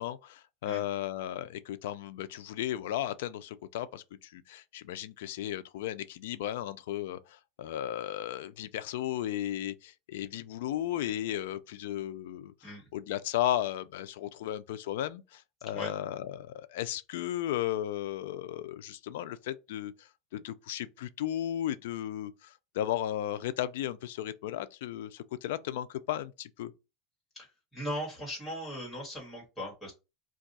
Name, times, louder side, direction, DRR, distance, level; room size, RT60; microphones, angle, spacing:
voice 1, 0.0-12.5 12.9-26.7, left 12 dB, 85° left, 0.3 m, -35 dB
voice 2, 27.3-29.9, equal, 10° left, 1.6 m, -39 dB
2.6 x 2.3 x 4.0 m
supercardioid pair, 165°, 0 cm